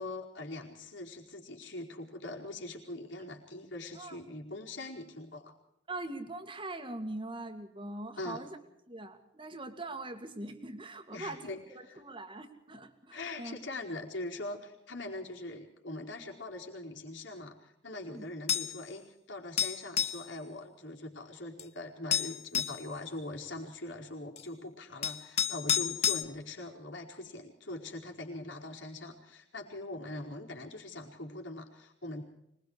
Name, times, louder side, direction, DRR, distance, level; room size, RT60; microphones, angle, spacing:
voice 1, 0.0-5.5 8.2-8.4 11.1-12.0 13.1-32.2, left 2 dB, 70° left, 0 dB, 4.7 m, -42 dB
voice 2, 5.9-8.6 8.9-13.6 18.0-18.2 22.5-22.6, right 2 dB, 25° right, 7 dB, 2.3 m, -42 dB
sound 1, 18.5-18.8 19.6-20.2 21.6-21.7 22.1-22.8 24.4-24.5 25.0-26.2, left 8 dB, 35° left, 0.9 m, -30 dB
25.5 x 21.0 x 4.9 m, 0.79 s
head